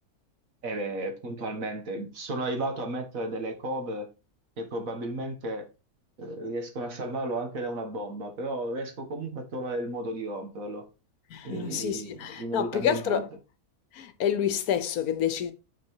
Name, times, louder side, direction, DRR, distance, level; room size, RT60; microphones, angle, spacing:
voice 1, 0.6-4.1 4.6-5.6 6.2-10.8 11.4-13.2, right 1 dB, 60° right, 1.9 m, -33 dB
voice 2, 11.3-13.3 13.9-15.5, left 9 dB, 75° left, 1.3 m, -28 dB
6.0 x 5.8 x 4.6 m
omnidirectional pair, 1.6 m